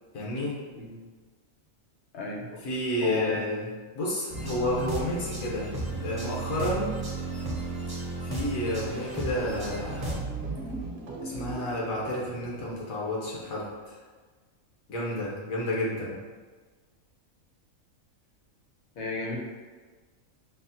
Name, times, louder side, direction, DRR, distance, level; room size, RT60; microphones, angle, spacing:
voice 1, 0.1-0.6 2.6-5.7 6.0-7.0 8.2-10.2 11.2-14.0 14.9-16.2, left 1 dB, 75° left, -5 dB, 1.2 m, -31 dB
voice 2, 2.1-2.4 3.0-3.4 19.0-19.4, left 3 dB, 60° left, -1 dB, 0.9 m, -33 dB
sound 1, 4.3-10.2, right 2 dB, 30° right, 0.4 m, -34 dB
sound 2, 9.1-12.9, right 3 dB, 60° right, 0.7 m, -38 dB
5.9 x 2.1 x 2.6 m, 1.4 s
omnidirectional pair, 1.5 m